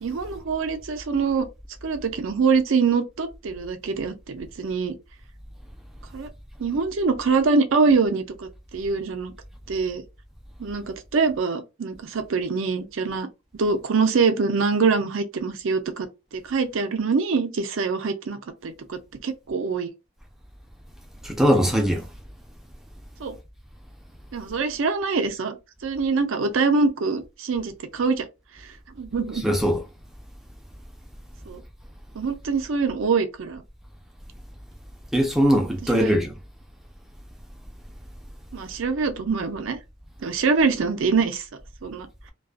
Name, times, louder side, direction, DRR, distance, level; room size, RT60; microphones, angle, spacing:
voice 1, 0.0-1.5 1.8-4.9 6.1-6.3 6.6-9.3 9.7-10.0 10.6-10.8 11.1-13.3 13.5-16.1 16.3-19.9 23.2-23.4 24.3-25.6 25.8-28.3 29.0-29.4 31.5-31.6 32.1-33.6 35.9-36.1 38.5-39.8 40.2-41.5 41.8-42.1, right 4 dB, 65° right, 0.5 m, -24 dB
voice 2, 21.2-22.1 29.4-29.8 35.1-36.3, equal, ahead, 0.5 m, -20 dB
2.4 x 2.3 x 2.4 m
head